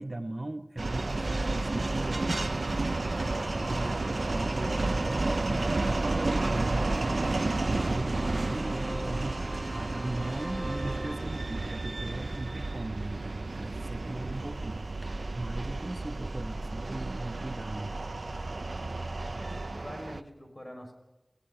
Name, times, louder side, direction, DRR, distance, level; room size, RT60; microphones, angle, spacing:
voice 1, 0.0-7.4 7.7-17.9, right 2 dB, 45° right, 6 dB, 1.1 m, -38 dB
sound 1, 0.8-20.2, right 2 dB, 90° right, 0.7 m, -32 dB
Organ, 1.1-11.8, right 1 dB, 5° left, 5.3 m, -41 dB
voice 2, 19.3-20.9, equal, 25° left, 4 dB, 5.8 m, -44 dB
29.5 x 18.0 x 5.8 m, 1.0 s
wide cardioid pair, 50°, 0 cm